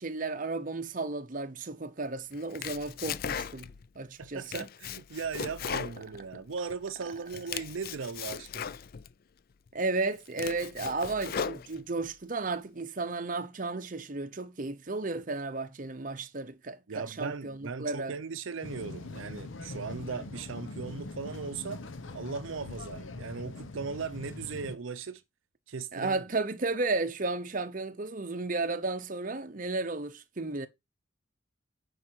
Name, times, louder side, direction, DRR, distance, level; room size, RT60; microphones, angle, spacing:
voice 1, 0.0-3.7 4.0-4.7 9.7-18.1 25.9-30.7, right 3 dB, 40° right, 0.8 m, -33 dB
Domestic sounds home sounds, 2.3-3.9 4.2-6.7 7.1-9.1 9.7-9.8 10.2-12.1, left 7 dB, 45° left, 0.4 m, -38 dB
voice 2, 4.2-8.8 16.9-21.8 22.1-25.2 25.7-26.2, right 5 dB, 75° right, 0.6 m, -38 dB
sound 1, 18.6-24.8, left 2 dB, 70° left, 0.9 m, -42 dB
9.3 x 4.9 x 4.5 m
head